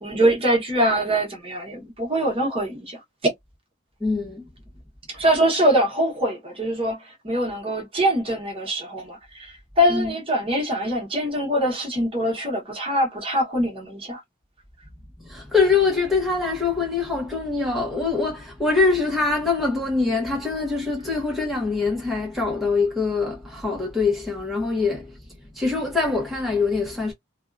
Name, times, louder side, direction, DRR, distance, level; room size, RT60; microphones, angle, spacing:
voice 1, 0.0-3.3 5.1-7.0 7.2-14.2, equal, 30° right, 0.9 m, -23 dB
voice 2, 4.0-4.4 9.9-10.1 15.2-27.1, left 4 dB, ahead, 0.8 m, -24 dB
2.6 x 2.3 x 2.3 m
head